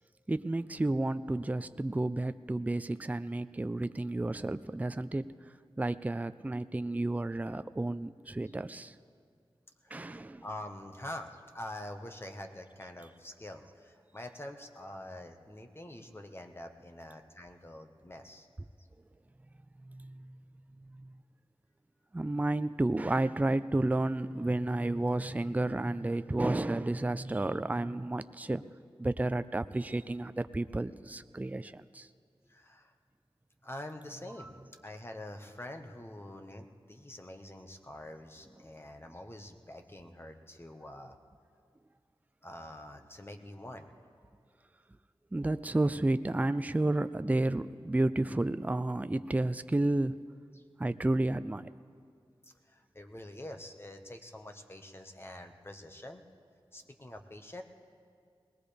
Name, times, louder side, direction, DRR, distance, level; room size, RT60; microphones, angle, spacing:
voice 1, 0.3-5.3 5.8-8.9 9.9-10.4 19.9-20.4 20.9-21.1 22.1-28.6 29.0-32.1 34.4-34.5 45.3-50.2 50.8-51.7, right 2 dB, 15° right, 12 dB, 0.4 m, -31 dB
voice 2, 9.8-18.5 32.5-32.9 33.6-34.5 34.8-41.2 42.4-43.9 50.5-50.6 52.4-56.2 56.7-57.6, left 1 dB, 25° left, 5 dB, 1.3 m, -46 dB
21.5 x 19.0 x 3.4 m, 2.1 s
wide cardioid pair, 55°, 10 cm